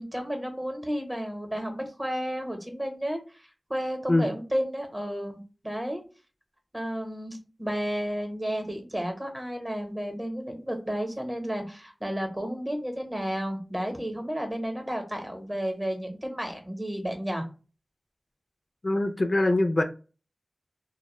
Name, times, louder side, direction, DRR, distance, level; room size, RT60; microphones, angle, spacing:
voice 1, 0.0-6.0 6.7-17.4, equal, 20° right, 4 dB, 0.8 m, -32 dB
voice 2, 18.8-19.8, left 2 dB, 45° left, 6 dB, 0.4 m, -23 dB
2.1 x 2.1 x 3.0 m, 0.34 s
cardioid pair, 45°, 0 cm